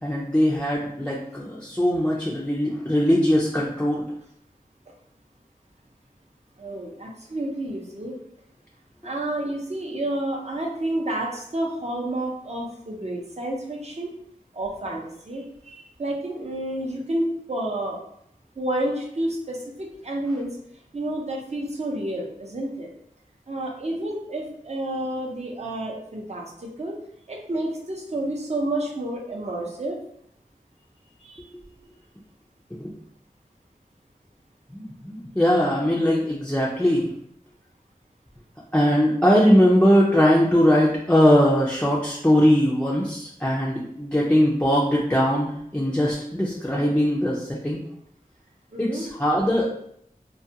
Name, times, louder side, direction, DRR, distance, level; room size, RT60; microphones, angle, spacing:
voice 1, 0.0-4.1 32.7-32.9 34.7-37.1 38.7-47.8 48.8-49.7, equal, 10° left, -5 dB, 0.4 m, -21 dB
voice 2, 6.6-8.2 9.0-14.1 14.5-18.0 18.6-20.5 20.9-22.9 23.5-27.0 27.3-30.0 31.2-31.4 48.7-49.1, right 1 dB, 45° right, -1 dB, 0.6 m, -30 dB
2.3 x 2.2 x 2.7 m, 0.71 s
wide cardioid pair, 45°, 15 cm